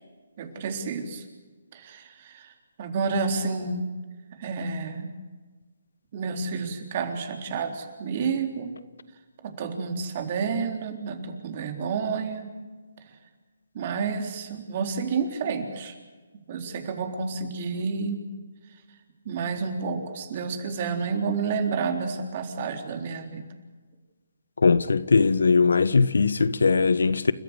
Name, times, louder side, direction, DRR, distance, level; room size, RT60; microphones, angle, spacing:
voice 1, 0.4-1.2 1.7-2.5 2.8-3.9 4.4-5.1 6.1-8.7 9.4-12.5 13.0-13.1 13.7-16.0 16.5-18.3 19.3-23.4, right 5 dB, 40° right, 3.8 m, -30 dB
voice 2, 24.6-27.3, left 4 dB, 80° left, 1.4 m, -20 dB
30.0 x 14.5 x 8.3 m
hypercardioid pair, 155°, 0 cm